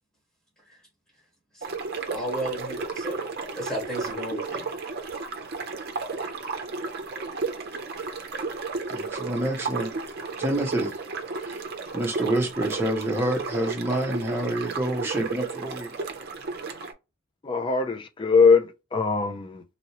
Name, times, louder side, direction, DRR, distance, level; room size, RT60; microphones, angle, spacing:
sound 1, 1.6-16.9, right 4 dB, 50° right, 0.6 m, -33 dB
voice 1, 2.1-3.2 3.5-4.6, right 1 dB, 5° left, 1.5 m, -32 dB
voice 2, 8.9-9.9 10.4-11.0 11.4-11.6 11.9-15.9, right 1 dB, 10° right, 0.6 m, -27 dB
voice 3, 17.4-19.6, left 5 dB, 25° left, 0.4 m, -21 dB
2.9 x 2.7 x 2.9 m
head